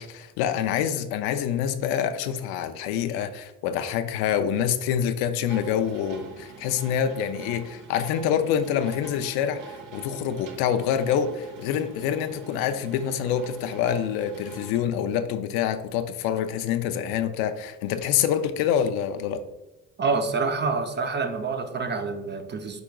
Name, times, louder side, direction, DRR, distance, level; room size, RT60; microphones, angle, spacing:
voice 1, 0.0-19.4, left 9 dB, 85° left, 0.5 m, -26 dB
sound 1, 5.5-14.8, right 5 dB, 55° right, 1.0 m, -45 dB
voice 2, 20.0-22.8, right 4 dB, 30° right, 0.6 m, -27 dB
4.9 x 4.6 x 2.3 m
supercardioid pair, 75°, 36 cm